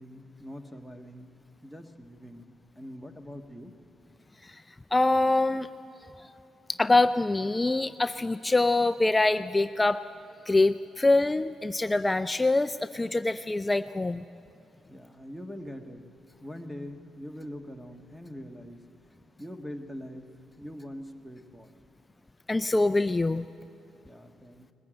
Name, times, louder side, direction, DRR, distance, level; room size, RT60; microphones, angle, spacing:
voice 1, 0.0-1.4 1.6-3.7 14.9-16.1 16.4-18.9 19.4-21.8 24.0-24.7, equal, ahead, 6 dB, 1.4 m, -43 dB
voice 2, 4.9-5.7 6.7-10.0 10.5-14.2 22.5-23.5, left 2 dB, 15° left, 11 dB, 0.4 m, -24 dB
21.0 x 14.5 x 8.8 m, 2.9 s
cardioid pair, 90°, 0 cm